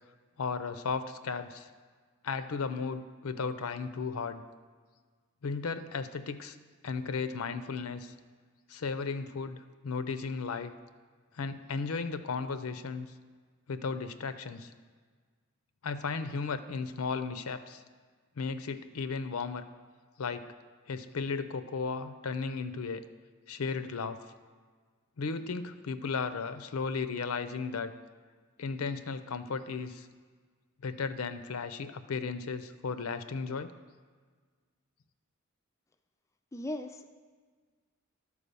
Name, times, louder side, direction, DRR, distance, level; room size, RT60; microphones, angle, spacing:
voice 1, 0.4-1.7 2.2-4.4 5.4-6.6 6.8-8.1 8.7-10.7 11.3-13.1 13.7-14.7 15.8-17.8 18.4-19.6 20.2-20.5 20.9-23.0 23.5-24.2 25.2-27.9 28.6-30.1 30.8-33.7, left 5 dB, 80° left, 11 dB, 0.6 m, -35 dB
voice 2, 36.5-37.1, left 1 dB, 15° left, 6 dB, 0.3 m, -37 dB
11.5 x 4.8 x 6.8 m, 1.5 s
head